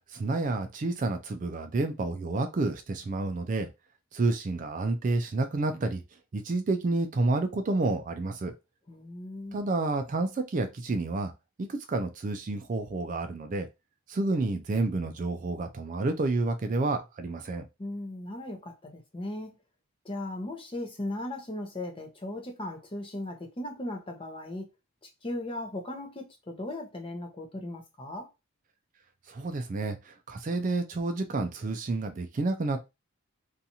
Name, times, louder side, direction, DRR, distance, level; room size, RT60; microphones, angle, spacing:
voice 1, 0.1-3.7 4.1-6.0 6.3-8.5 9.5-11.3 11.6-13.7 14.1-17.7 29.3-32.8, right 2 dB, 35° right, 0.3 m, -29 dB
voice 2, 8.9-9.6 17.8-19.6 20.0-24.7 25.2-28.3, left 1 dB, 25° left, 0.6 m, -37 dB
2.7 x 2.3 x 2.7 m
head